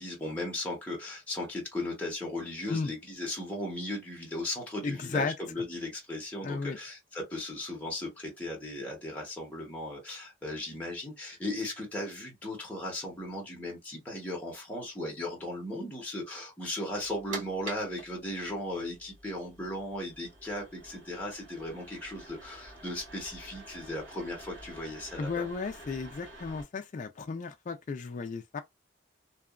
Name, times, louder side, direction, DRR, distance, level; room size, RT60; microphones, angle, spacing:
voice 1, 0.0-25.5, left 1 dB, 10° left, 0.8 m, -37 dB
voice 2, 4.8-5.3 6.4-6.8 25.2-28.6, left 4 dB, 40° left, 0.3 m, -34 dB
sound 1, 16.9-26.6, right 2 dB, 85° right, 1.4 m, -48 dB
2.8 x 2.3 x 2.3 m
head